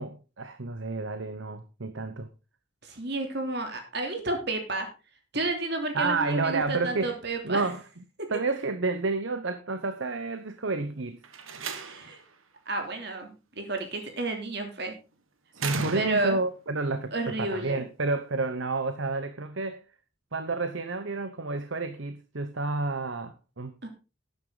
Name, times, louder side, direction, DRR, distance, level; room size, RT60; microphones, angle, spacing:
voice 1, 0.0-2.3 5.9-7.1 7.4-7.8 8.3-11.2 15.5-19.8 20.3-23.7, right 3 dB, 70° right, 0.9 m, -30 dB
voice 2, 2.8-4.9 5.3-7.7 8.2-8.3 11.8-12.2 12.7-14.9 15.9-16.4 17.1-17.9 23.8-23.9, right 2 dB, 55° right, 3.1 m, -31 dB
Slam, 11.2-12.3 13.8-14.2 15.6-16.5, right 4 dB, 85° right, 1.7 m, -35 dB
12.0 x 9.6 x 3.9 m
head